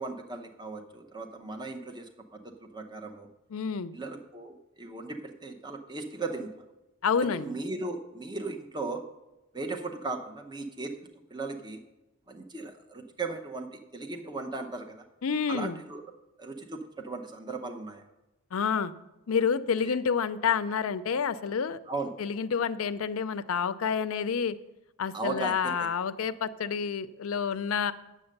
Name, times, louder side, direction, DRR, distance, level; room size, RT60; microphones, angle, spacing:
voice 1, 0.0-3.3 3.9-6.5 7.2-9.0 9.5-11.8 12.3-15.0 15.5-16.0 16.4-18.0 19.8-19.9 21.9-22.1 25.1-25.9, right 3 dB, 20° right, 4 dB, 0.7 m, -37 dB
voice 2, 3.5-3.9 7.0-7.5 15.2-15.8 18.5-18.9 19.3-21.8 22.2-24.6 25.0-27.9, left 6 dB, 75° left, 13 dB, 0.5 m, -28 dB
8.8 x 7.5 x 6.5 m, 1.0 s
head